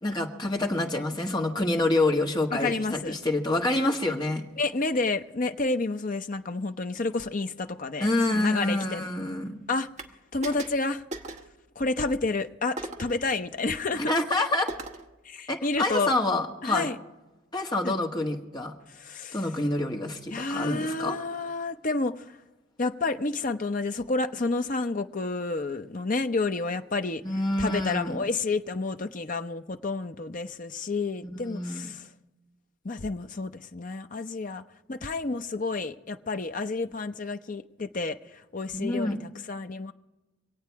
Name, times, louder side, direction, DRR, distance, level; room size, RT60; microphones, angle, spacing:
voice 1, 0.0-4.4 8.0-9.6 14.1-14.7 15.5-16.9 17.5-18.7 19.3-21.2 27.2-28.2 31.3-31.9 38.7-39.3, left 2 dB, 20° left, 1.5 m, -27 dB
voice 2, 2.5-3.1 4.6-9.0 9.7-9.9 10.3-11.0 11.8-14.1 15.2-16.1 16.6-17.0 17.8-18.0 18.9-19.5 20.3-22.4 22.8-32.1 32.8-39.9, left 3 dB, 40° left, 0.7 m, -30 dB
sound 1, 10.0-10.1 10.4-10.8 11.1-11.5 12.8-13.2 14.7-15.1, right 2 dB, 35° right, 1.1 m, -38 dB
25.5 x 8.7 x 4.7 m
head